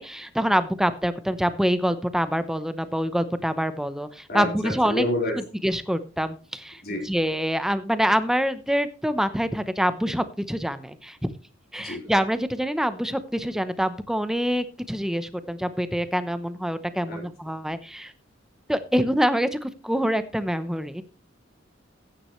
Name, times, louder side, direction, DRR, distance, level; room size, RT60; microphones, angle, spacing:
voice 1, 0.0-5.0 5.6-11.2 11.7-18.1 18.7-21.0, equal, 5° right, 12 dB, 0.8 m, -25 dB
voice 2, 4.3-5.4 6.8-7.1 11.8-12.1 17.1-17.2, left 1 dB, 55° left, 1 dB, 4.7 m, -29 dB
14.5 x 9.8 x 3.2 m, 0.35 s
head